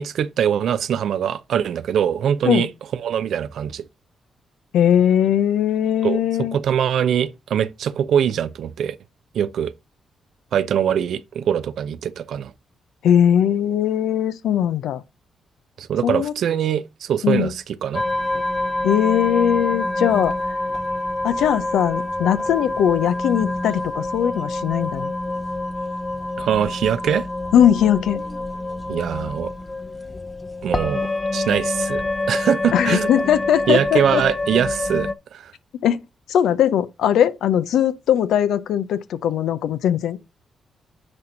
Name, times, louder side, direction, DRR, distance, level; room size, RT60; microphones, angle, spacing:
voice 1, 0.0-3.8 6.0-9.0 9.3-9.7 10.5-12.5 15.8-18.0 26.4-27.3 28.9-29.5 30.6-32.0 32.3-33.3 33.7-35.5, right 9 dB, 70° right, 0.6 m, -23 dB
voice 2, 4.7-6.6 13.0-15.0 16.0-16.3 17.2-17.5 18.8-20.3 21.2-25.1 27.5-28.2 32.7-34.2 35.8-36.0 36.3-40.2, left 9 dB, 80° left, 0.6 m, -19 dB
sound 1, 17.9-35.1, left 2 dB, 30° left, 0.8 m, -26 dB
9.7 x 4.4 x 3.8 m
supercardioid pair, 50°, 0 cm